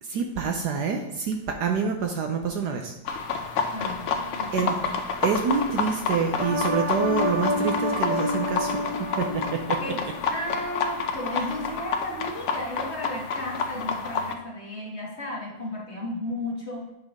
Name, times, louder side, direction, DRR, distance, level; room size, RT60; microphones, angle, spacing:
voice 1, 0.0-2.9 4.5-4.8 5.2-10.0 11.3-11.5, right 5 dB, 70° right, 4 dB, 1.1 m, -27 dB
sound 1, 3.0-14.3, left 5 dB, 80° left, 0.6 m, -29 dB
voice 2, 3.7-4.0 4.4-5.0 9.8-10.0 10.3-16.9, left 1 dB, 40° left, -2 dB, 1.4 m, -34 dB
sound 2, 6.4-10.6 11.0-11.1, left 1 dB, 35° right, 0.7 m, -29 dB
8.8 x 5.6 x 3.6 m, 0.89 s
omnidirectional pair, 2.1 m